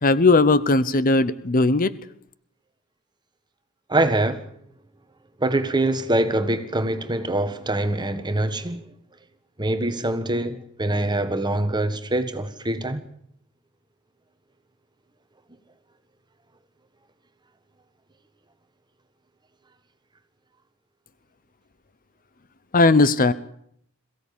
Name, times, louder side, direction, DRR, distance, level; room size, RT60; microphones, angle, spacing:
voice 1, 0.0-1.9 22.7-23.3, left 3 dB, 40° left, 0.9 m, -18 dB
voice 2, 3.9-4.5 5.4-8.9 9.6-13.0, right 1 dB, 20° right, 1.5 m, -24 dB
22.5 x 16.0 x 8.7 m
head